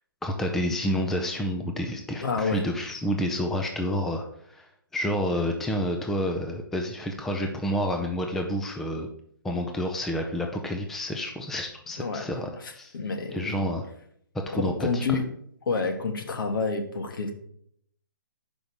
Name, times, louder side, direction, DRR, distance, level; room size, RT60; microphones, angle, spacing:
voice 1, 0.2-4.7 4.9-9.1 9.4-12.9 13.3-13.9 14.5-15.2, equal, 5° left, 3 dB, 0.4 m, -29 dB
voice 2, 2.2-2.6 12.0-12.3 12.6-13.6 14.5-15.3 15.7-17.3, left 4 dB, 70° left, 5 dB, 1.4 m, -29 dB
5.6 x 5.2 x 6.2 m, 0.67 s
hypercardioid pair, 155°, 12 cm